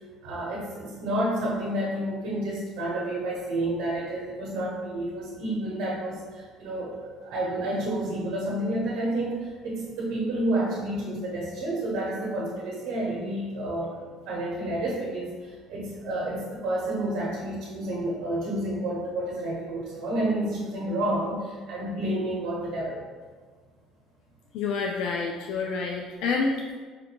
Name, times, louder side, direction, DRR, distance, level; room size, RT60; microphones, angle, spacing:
voice 1, 0.2-14.0 14.2-23.0, right 1 dB, 70° right, -4 dB, 0.9 m, -30 dB
voice 2, 24.5-26.7, left 4 dB, 70° left, 1 dB, 0.3 m, -28 dB
5.0 x 2.5 x 2.8 m, 1.5 s
cardioid pair, 115°, 0 cm